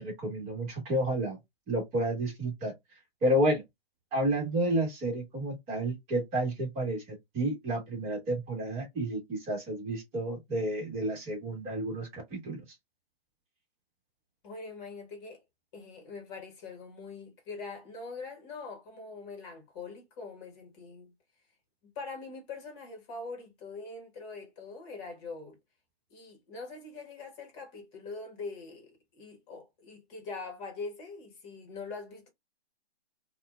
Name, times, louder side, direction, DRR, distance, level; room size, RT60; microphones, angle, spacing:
voice 1, 0.0-1.4 1.7-2.7 3.2-3.6 4.1-7.0 7.3-12.6, right 1 dB, 20° right, 1.6 m, -30 dB
voice 2, 14.4-15.4 15.7-21.1 21.9-25.6 26.1-32.3, left 4 dB, 25° left, 1.3 m, -43 dB
4.2 x 2.4 x 2.3 m
figure-of-eight pair, 135°, 31 cm